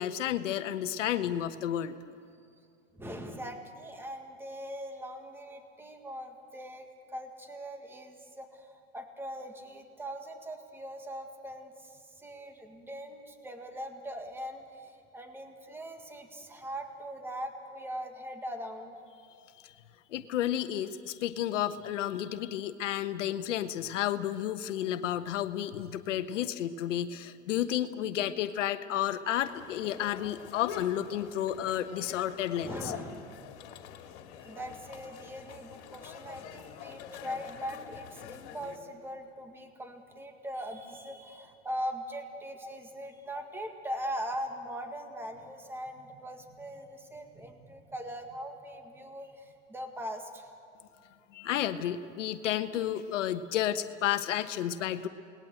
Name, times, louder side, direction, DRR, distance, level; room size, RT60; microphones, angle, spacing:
voice 1, 0.0-2.0 19.6-19.7 20.1-32.7 51.3-55.1, left 11 dB, 75° left, 10 dB, 1.2 m, -31 dB
voice 2, 2.9-19.0 32.6-33.5 34.4-50.5, equal, 5° right, 5 dB, 1.9 m, -41 dB
sound 1, 29.4-38.8, left 9 dB, 55° left, 2.5 m, -46 dB
28.5 x 20.0 x 7.9 m, 2.4 s
hypercardioid pair, 135°, 38 cm